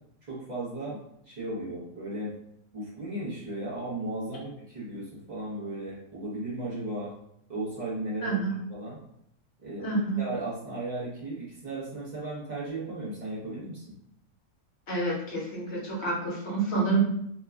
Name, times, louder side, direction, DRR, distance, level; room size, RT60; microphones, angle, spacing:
voice 1, 0.2-1.0 1.3-2.3 2.7-7.1 7.5-8.4 8.7-9.0 9.6-13.8, right 2 dB, 35° right, -7 dB, 0.9 m, -35 dB
voice 2, 8.2-8.6 9.8-10.2 14.9-17.0, right 3 dB, 50° left, -4 dB, 1.1 m, -28 dB
3.1 x 2.2 x 2.3 m, 0.73 s
omnidirectional pair, 1.5 m